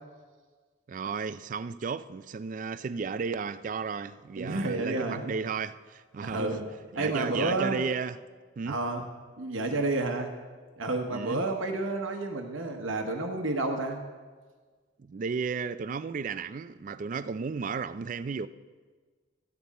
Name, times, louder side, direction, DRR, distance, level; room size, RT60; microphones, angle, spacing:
voice 1, 0.9-6.6 6.9-8.2 8.6-8.8 11.1-11.4 15.0-18.5, right 5 dB, 40° right, 0.3 m, -34 dB
voice 2, 4.4-5.3 6.2-6.7 7.0-7.8 8.7-9.1 9.4-10.3 10.8-14.0, right 2 dB, 85° right, 1.0 m, -30 dB
14.0 x 9.5 x 4.1 m
head